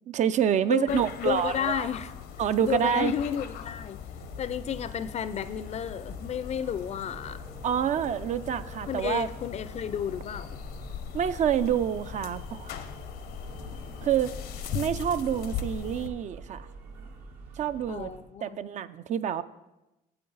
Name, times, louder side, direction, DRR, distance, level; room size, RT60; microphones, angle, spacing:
voice 1, 0.1-1.9 2.4-3.1 7.6-9.3 11.1-12.7 14.0-14.4 14.7-16.7 17.6-18.1 18.4-19.4, right 9 dB, 45° right, 13 dB, 0.4 m, -27 dB
voice 2, 0.7-2.1 2.6-4.0 4.4-7.4 8.9-10.6 17.9-18.6, left 8 dB, 45° left, 14 dB, 0.4 m, -32 dB
sound 1, 0.9-16.1, left 8 dB, 80° left, 0.7 m, -40 dB
sound 2, 4.1-18.2, right 4 dB, 80° right, 1.6 m, -47 dB
8.7 x 7.6 x 3.9 m, 0.97 s
cardioid pair, 110°, 16 cm